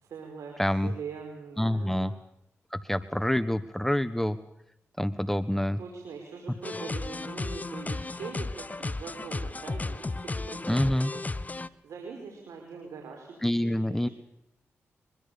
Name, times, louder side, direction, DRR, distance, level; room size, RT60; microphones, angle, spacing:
voice 1, 0.0-2.1 5.8-11.2 11.5-14.1, right 5 dB, 85° right, 2 dB, 5.1 m, -43 dB
voice 2, 0.6-0.9 1.6-2.1 2.7-4.4 5.0-5.8 10.7-11.1 13.4-14.1, left 1 dB, 5° left, 13 dB, 1.4 m, -27 dB
sound 1, 6.6-11.7, left 3 dB, 30° left, 1.1 m, -34 dB
23.5 x 23.5 x 7.0 m, 0.81 s
cardioid pair, 50°, 5 cm